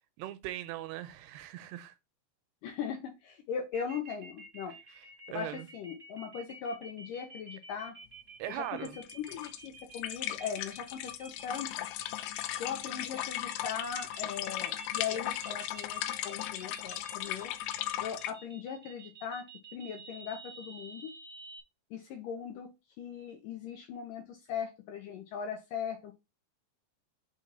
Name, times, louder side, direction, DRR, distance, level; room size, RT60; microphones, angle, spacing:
voice 1, 0.2-2.0 5.0-5.7 8.4-9.0, right 14 dB, 85° right, 2.6 m, -40 dB
voice 2, 2.6-4.7 5.3-8.0 8.5-8.7 9.2-11.9 12.6-17.5 18.0-19.5 19.7-21.1 21.9-22.7 23.0-26.1, left 7 dB, 75° left, 2.1 m, -39 dB
sound 1, 3.7-21.6, right 3 dB, 25° right, 1.3 m, -50 dB
sound 2, 8.8-18.3, left 13 dB, 90° left, 2.7 m, -37 dB
6.0 x 4.3 x 4.3 m
omnidirectional pair, 4.8 m